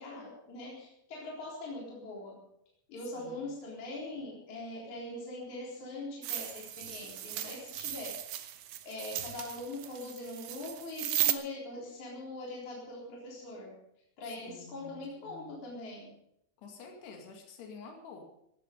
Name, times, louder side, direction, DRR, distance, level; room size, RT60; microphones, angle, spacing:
voice 1, 0.0-2.4 2.9-8.2 8.8-13.7 14.2-16.2, left 2 dB, 50° left, -4 dB, 5.2 m, -42 dB
voice 2, 3.2-3.5 14.2-15.7 16.6-18.2, left 4 dB, 85° left, 2 dB, 4.4 m, -50 dB
sound 1, 6.2-11.3, right 12 dB, 70° right, 2.4 m, -36 dB
18.0 x 12.5 x 5.3 m, 0.75 s
omnidirectional pair, 4.6 m